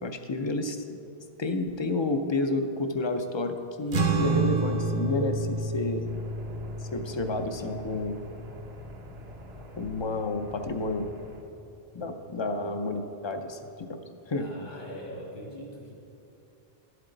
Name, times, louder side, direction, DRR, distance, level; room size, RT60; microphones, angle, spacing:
voice 1, 0.0-0.8 1.4-6.1 6.8-8.2 9.8-11.1 11.9-14.0 14.3-14.5, left 2 dB, 40° left, 7 dB, 0.4 m, -30 dB
sound 1, 3.9-10.6, right 3 dB, 50° right, 0.7 m, -30 dB
sound 2, 6.0-11.4, equal, 85° right, 1.2 m, -46 dB
voice 2, 14.3-15.9, equal, 65° left, -2 dB, 2.1 m, -41 dB
11.5 x 7.7 x 3.9 m, 2.7 s
omnidirectional pair, 1.0 m